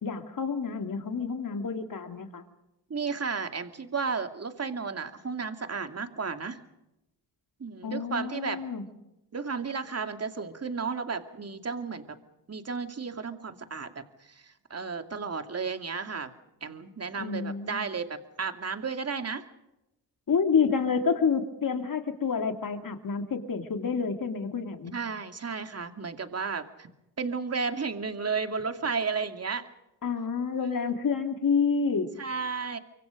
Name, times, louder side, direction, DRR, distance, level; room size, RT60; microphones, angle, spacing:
voice 1, 0.0-2.4 7.8-8.8 17.2-17.8 20.3-24.9 30.0-32.1, left 5 dB, 50° left, 6 dB, 3.0 m, -28 dB
voice 2, 2.9-6.6 7.6-8.6 9.3-12.2 12.5-16.3 16.6-19.4 24.9-26.9 27.2-29.7 32.2-32.8, right 5 dB, 35° right, 7 dB, 2.6 m, -33 dB
25.0 x 24.0 x 5.2 m, 0.89 s
cardioid pair, 75°, 42 cm